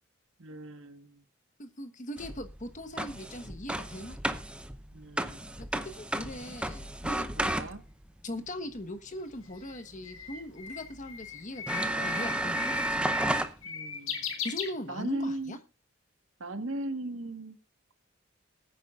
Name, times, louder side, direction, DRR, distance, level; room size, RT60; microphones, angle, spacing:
voice 1, 0.4-1.2 4.9-5.7 7.4-7.8 13.6-14.3 14.9-15.6 16.4-17.6, right 1 dB, 75° right, 8 dB, 1.5 m, -38 dB
voice 2, 1.6-4.2 5.6-7.5 8.2-13.1 14.4-15.6, left 1 dB, 40° left, 7 dB, 1.2 m, -40 dB
sound 1, 2.2-8.0 10.2-10.3 10.9-11.0 11.7-13.5, right 1 dB, 5° right, 0.7 m, -33 dB
Bird, 9.1-15.3, left 7 dB, 80° left, 1.8 m, -39 dB
21.0 x 9.7 x 2.4 m, 0.29 s
head